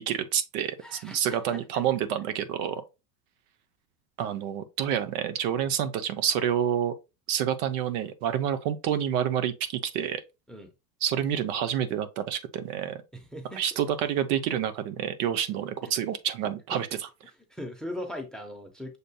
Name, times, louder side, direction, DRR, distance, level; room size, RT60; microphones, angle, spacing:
voice 1, 0.0-2.8 4.2-6.9 7.3-10.2 11.0-13.0 13.6-16.9, right 9 dB, 60° right, 0.7 m, -28 dB
voice 2, 0.8-1.6 10.5-10.7 13.1-13.8 15.8-15.9 17.5-19.0, left 1 dB, ahead, 0.6 m, -39 dB
6.6 x 2.6 x 2.2 m
hypercardioid pair, 105°, 49 cm